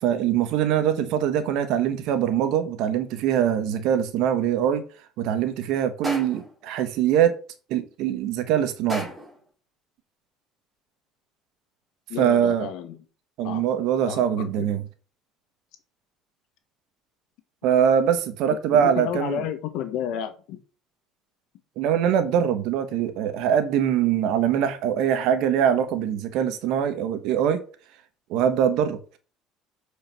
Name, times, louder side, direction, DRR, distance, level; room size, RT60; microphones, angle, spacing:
voice 1, 0.0-4.8 5.2-7.3 7.7-9.1 12.2-12.7 13.4-14.8 17.6-19.4 21.8-27.6 28.3-29.0, right 9 dB, 70° right, 1.4 m, -23 dB
sound 1, 6.0-6.6 8.9-9.4, equal, 15° right, 4.0 m, -33 dB
voice 2, 12.1-13.0 13.4-13.6 14.1-14.7 18.7-20.6, left 9 dB, 70° left, 1.7 m, -31 dB
6.8 x 5.1 x 6.1 m
cardioid pair, 120°, 0 cm